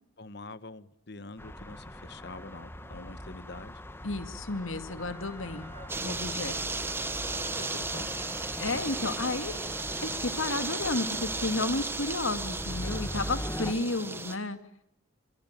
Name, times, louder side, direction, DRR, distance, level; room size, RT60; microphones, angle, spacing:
voice 1, 0.2-3.8 7.6-8.1 8.6-8.9, left 2 dB, 50° left, 14 dB, 1.3 m, -45 dB
sound 1, 1.4-13.7, left 1 dB, 10° left, 1.6 m, -41 dB
voice 2, 4.0-5.7 6.0-6.7 8.6-9.6 10.0-14.6, left 2 dB, 75° left, 9 dB, 2.3 m, -32 dB
Wind instrument woodwind instrument, 4.9-10.2, right 3 dB, 25° right, 5.6 m, -52 dB
sound 2, 5.9-14.4, right 3 dB, 10° right, 1.4 m, -35 dB
25.0 x 23.5 x 9.0 m, 0.81 s
head